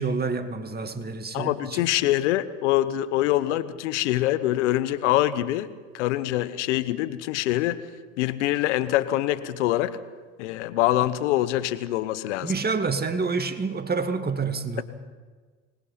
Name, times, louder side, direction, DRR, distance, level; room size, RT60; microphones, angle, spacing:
voice 1, 0.0-1.9 12.4-14.8, right 4 dB, 25° right, 8 dB, 2.2 m, -28 dB
voice 2, 1.3-5.7 5.9-7.8 8.2-10.0 10.4-12.5, left 14 dB, 80° left, 14 dB, 1.0 m, -24 dB
25.0 x 20.0 x 5.7 m, 1.4 s
hypercardioid pair, 65°, 35 cm